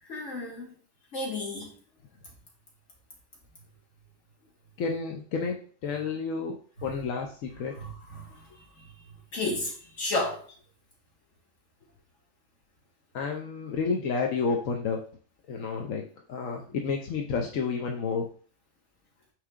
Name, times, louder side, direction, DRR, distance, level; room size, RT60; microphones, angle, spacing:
voice 1, 0.1-0.7 1.1-1.7 7.7-8.5 8.8-8.9 9.3-10.4, left 2 dB, 65° left, -2 dB, 2.2 m, -32 dB
voice 2, 4.8-7.7 13.1-15.0 15.5-16.0 16.3-18.3, left 5 dB, 90° left, 1 dB, 1.2 m, -30 dB
8.8 x 3.4 x 3.6 m, 0.43 s
omnidirectional pair, 1.3 m